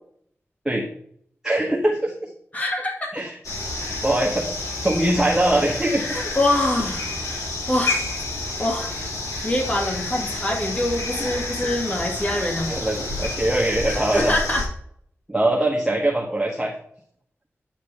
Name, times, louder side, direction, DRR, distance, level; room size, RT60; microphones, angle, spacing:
voice 1, 1.4-2.3 3.1-3.3 3.8-6.0 11.6-11.7 12.7-14.3 15.3-16.7, right 1 dB, 10° right, -2 dB, 1.2 m, -22 dB
voice 2, 2.5-3.1 6.0-8.0 8.3-8.9 9.4-12.7 13.9-14.6, left 1 dB, 30° left, -1 dB, 2.2 m, -25 dB
sound 1, 3.4-14.7, left 2 dB, 75° left, 3.0 m, -29 dB
9.3 x 7.5 x 3.4 m, 0.66 s
wide cardioid pair, 115°, 5 cm